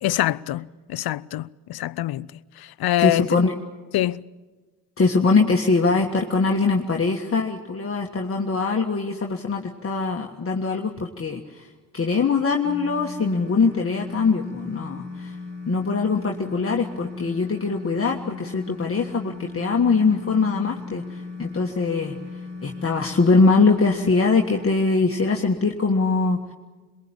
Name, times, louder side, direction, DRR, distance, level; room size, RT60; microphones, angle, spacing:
voice 1, 0.0-2.3 2.6-3.4 3.9-4.2, left 14 dB, 60° left, 0.7 m, -25 dB
voice 2, 3.0-3.5 5.0-11.7 11.9-15.4 15.6-22.2 22.6-26.5, left 4 dB, 35° left, 1.7 m, -22 dB
sound 1, 12.6-24.7, left 3 dB, 25° right, 4.7 m, -37 dB
22.5 x 21.5 x 8.9 m
supercardioid pair, 60°, 41 cm